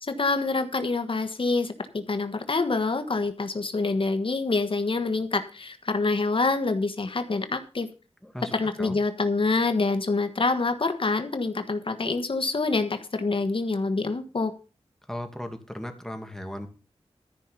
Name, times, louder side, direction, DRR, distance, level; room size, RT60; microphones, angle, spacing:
voice 1, 0.0-7.9 8.5-14.5, left 3 dB, 55° left, 9 dB, 1.4 m, -26 dB
voice 2, 8.2-9.0 15.1-16.7, left 1 dB, 5° left, 5 dB, 2.3 m, -37 dB
14.0 x 5.6 x 7.0 m, 0.34 s
wide cardioid pair, 90°, 11 cm